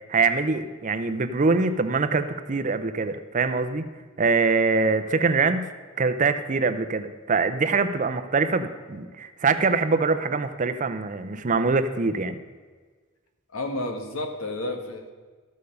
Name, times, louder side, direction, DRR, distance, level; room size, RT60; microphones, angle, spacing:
voice 1, 0.1-3.8 4.2-5.7 6.0-12.4, right 4 dB, 40° right, 10 dB, 0.6 m, -24 dB
voice 2, 13.5-15.1, left 2 dB, 85° left, 4 dB, 1.4 m, -31 dB
13.0 x 6.7 x 5.3 m, 1.4 s
head